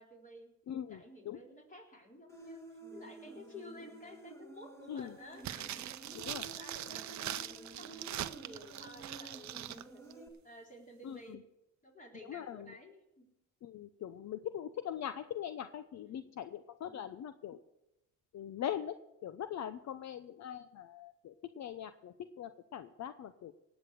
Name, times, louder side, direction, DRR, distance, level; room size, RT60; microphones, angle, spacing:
voice 1, 0.0-2.6 2.9-5.6 6.2-7.4 7.8-11.5 11.8-13.3 16.0-16.3 16.8-17.1, left 1 dB, 25° left, 0 dB, 4.0 m, -53 dB
voice 2, 0.7-1.4 4.9-5.1 6.1-6.4 11.0-11.4 12.3-12.7 13.6-17.6 18.3-18.9 19.2-23.5, left 10 dB, 60° left, 11 dB, 0.7 m, -42 dB
Human voice, 2.3-10.3, right 2 dB, 10° left, 2.3 m, -52 dB
sound 1, 5.4-9.8 10.1-10.2, right 12 dB, 60° right, 0.7 m, -42 dB
18.0 x 8.1 x 6.6 m, 0.89 s
cardioid pair, 100°, 31 cm